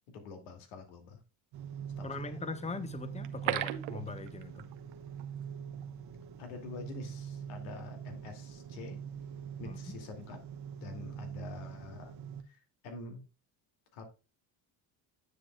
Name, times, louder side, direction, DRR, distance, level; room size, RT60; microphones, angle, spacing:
voice 1, 0.1-1.2 2.0-2.3 6.4-9.0 9.6-10.4 10.8-12.2 12.4-13.2 13.9-14.0, left 4 dB, 85° left, 2.6 m, -46 dB
sound 1, 1.5-12.4, right 8 dB, 55° right, 1.3 m, -43 dB
voice 2, 2.0-4.7 9.6-9.8, left 4 dB, 15° left, 1.0 m, -41 dB
sound 2, 3.2-4.9 5.2-5.3 5.7-5.9, right 14 dB, 85° right, 1.0 m, -35 dB
9.7 x 7.5 x 2.3 m
supercardioid pair, 85°, 45 cm